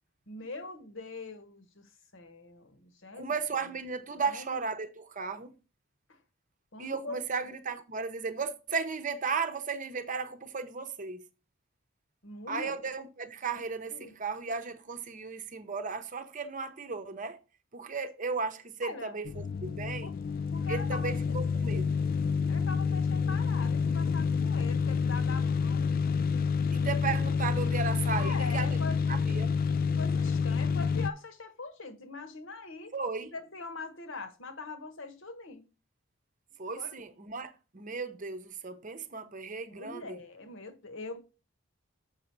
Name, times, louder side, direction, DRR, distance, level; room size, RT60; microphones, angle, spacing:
voice 1, 0.3-3.3 4.2-4.6 6.1-6.2 6.7-7.2 12.2-12.7 13.9-14.1 18.8-19.2 20.0-20.2 20.5-21.3 22.5-26.0 28.1-29.0 29.9-32.9 33.3-35.6 36.8-37.0 39.7-41.2, left 3 dB, 65° left, 1.2 m, -42 dB
voice 2, 3.2-5.5 6.8-11.3 12.5-17.4 17.7-20.1 20.7-22.0 26.7-28.8 29.1-29.6 32.9-33.3 36.6-40.2, right 4 dB, 40° right, 0.8 m, -35 dB
sound 1, 19.2-31.1, left 5 dB, 45° left, 0.3 m, -28 dB
6.8 x 5.3 x 4.5 m
head